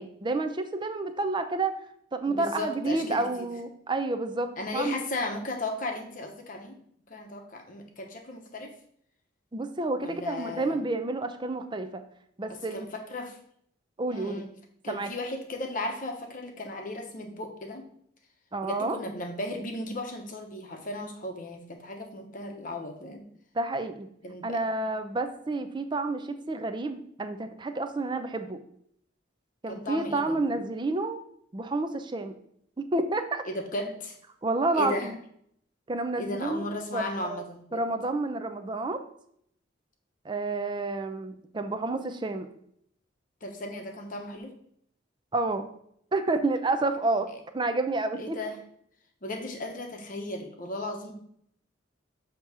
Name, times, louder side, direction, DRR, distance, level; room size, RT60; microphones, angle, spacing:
voice 1, 0.0-1.8 2.1-5.0 9.5-12.0 12.4-12.9 14.0-14.5 14.9-15.1 18.5-19.0 23.5-24.1 24.4-28.6 29.6-31.2 31.5-32.3 32.8-33.4 34.4-35.2 35.9-36.6 36.9-37.4 37.7-39.0 40.2-42.5 45.3-45.7 46.1-47.3 47.5-48.4, right 2 dB, 25° right, 8 dB, 0.5 m, -29 dB
voice 2, 2.3-3.5 4.6-6.8 7.1-8.7 10.0-10.8 12.7-13.4 14.1-14.5 14.8-17.8 18.6-23.2 24.2-24.6 29.7-30.4 33.5-34.2 34.7-35.1 36.2-37.8 43.4-44.5 48.2-48.6 49.2-51.1, left 2 dB, 45° left, 3 dB, 0.9 m, -35 dB
6.9 x 2.9 x 4.7 m, 0.68 s
head